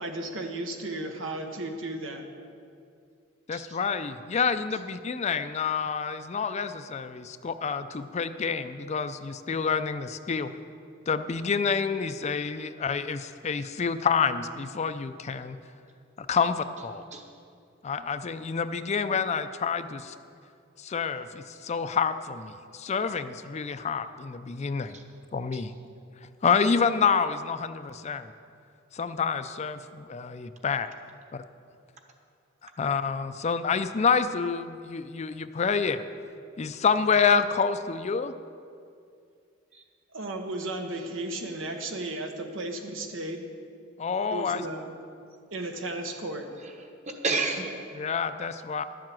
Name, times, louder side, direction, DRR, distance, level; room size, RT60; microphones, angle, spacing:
voice 1, 0.0-2.2 40.1-43.5 44.3-44.9 45.5-46.5, right 2 dB, 90° right, 4 dB, 1.2 m, -34 dB
voice 2, 3.5-10.5 11.1-15.6 16.2-17.0 17.8-20.1 20.8-25.0 25.3-25.7 26.4-28.3 28.9-30.9 31.3-31.4 32.8-36.0 36.6-38.3 44.0-44.6 48.0-48.8, left 5 dB, 35° left, 11 dB, 0.4 m, -28 dB
voice 3, 46.6-47.8, right 3 dB, 40° right, 4 dB, 1.2 m, -32 dB
11.5 x 7.5 x 7.6 m, 2.4 s
head